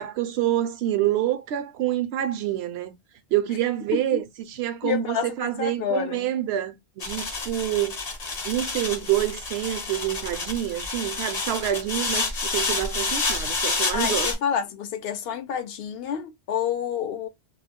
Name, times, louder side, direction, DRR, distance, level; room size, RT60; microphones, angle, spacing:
voice 1, 0.0-2.9 3.3-8.0 8.4-14.3, right 12 dB, 70° right, 0.8 m, -27 dB
voice 2, 3.9-4.2 4.8-6.3 13.9-17.3, left 8 dB, 65° left, 0.8 m, -29 dB
sound 1, 7.0-14.3, left 3 dB, 40° left, 0.8 m, -29 dB
2.3 x 2.0 x 3.5 m
omnidirectional pair, 1.1 m